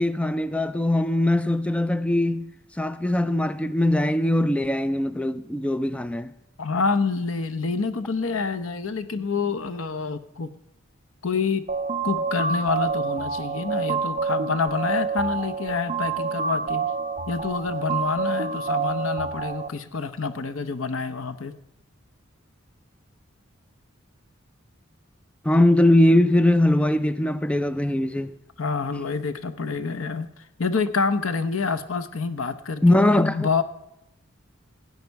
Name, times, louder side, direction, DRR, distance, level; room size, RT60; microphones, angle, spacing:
voice 1, 0.0-2.5 2.8-6.3 25.4-28.3 32.8-33.4, left 1 dB, 5° left, 0.3 m, -21 dB
voice 2, 6.6-10.5 11.2-11.6 12.0-16.9 17.3-21.5 28.6-30.3 30.6-33.6, left 4 dB, 85° left, 0.9 m, -27 dB
sound 1, 11.7-19.7, right 5 dB, 35° right, 0.6 m, -28 dB
16.5 x 9.3 x 4.6 m
head